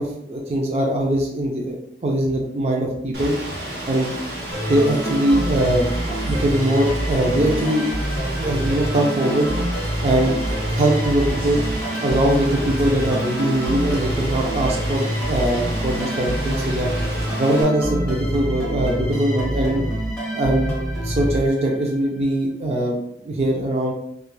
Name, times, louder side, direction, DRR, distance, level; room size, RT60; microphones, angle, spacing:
voice 1, 0.0-1.8 2.0-3.3 3.9-4.1 4.7-5.9 6.2-7.8 8.3-9.5 10.0-10.3 10.7-11.6 12.0-16.9 17.4-19.9 20.3-20.7 21.0-23.0 23.2-23.9, right 1 dB, 35° right, -1 dB, 0.4 m, -21 dB
Rain, 3.1-17.6, right 1 dB, 85° right, 0.9 m, -32 dB
sound 1, 4.5-22.0, equal, 5° left, 1.0 m, -26 dB
3.1 x 2.3 x 2.2 m, 0.75 s
head